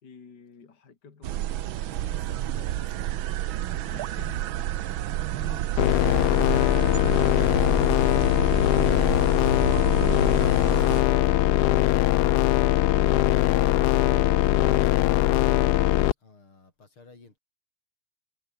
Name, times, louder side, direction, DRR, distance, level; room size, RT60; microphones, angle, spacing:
voice 1, 0.0-2.2 3.8-4.8 5.1-5.2, left 5 dB, 50° left, 3.1 m, -48 dB
sound 1, 1.2-11.0, right 13 dB, 75° right, 1.6 m, -30 dB
voice 2, 1.8-3.6 5.4-5.7 13.0-17.4, left 3 dB, 85° left, 6.4 m, -50 dB
sound 2, 5.8-16.1, left 14 dB, 70° left, 1.0 m, -21 dB
sound 3, 6.9-12.1, right 2 dB, 55° right, 7.2 m, -58 dB
omnidirectional pair, 2.3 m